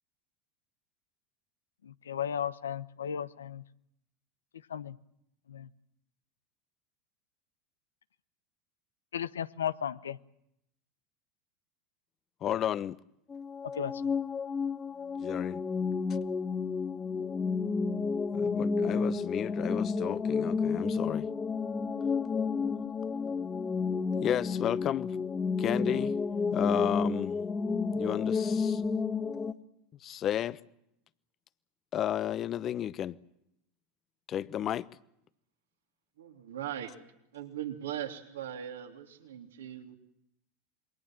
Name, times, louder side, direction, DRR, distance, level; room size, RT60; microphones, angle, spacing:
voice 1, 1.8-3.6 4.7-5.0 5.5-5.7 9.1-10.2 13.8-13.9, left 9 dB, 85° left, 0.9 m, -35 dB
voice 2, 12.4-13.0 15.2-15.6 18.3-21.3 24.2-25.2 25.6-26.1 26.5-27.4 27.9-28.8 30.0-30.6 31.9-33.2 34.3-34.9, left 11 dB, 40° left, 0.9 m, -32 dB
sound 1, 13.3-29.5, left 5 dB, 25° left, 1.4 m, -31 dB
voice 3, 36.2-36.9 37.3-40.0, right 11 dB, 80° right, 3.2 m, -39 dB
27.5 x 22.5 x 7.6 m
hypercardioid pair, 85°, 0 cm